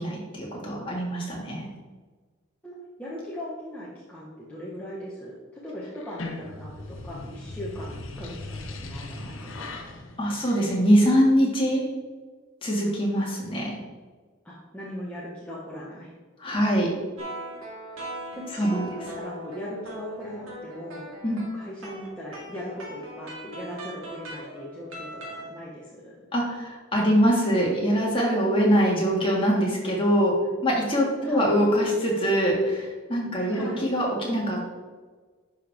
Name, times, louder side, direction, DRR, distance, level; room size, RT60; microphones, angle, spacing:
voice 1, 0.0-1.7 10.2-11.9 12.6-13.8 16.4-17.0 18.6-18.9 21.2-21.4 26.3-30.3 30.6-34.7, equal, 25° left, -3 dB, 2.0 m, -23 dB
voice 2, 2.6-9.7 14.4-16.1 18.3-21.1 21.5-26.2 31.2-31.5 33.5-33.9, equal, 5° left, -7 dB, 1.2 m, -39 dB
sound 1, 5.9-11.3, left 2 dB, 70° left, 1.0 m, -39 dB
sound 2, 17.2-25.6, right 1 dB, 80° right, 2.3 m, -40 dB
11.0 x 5.6 x 3.6 m, 1.4 s
head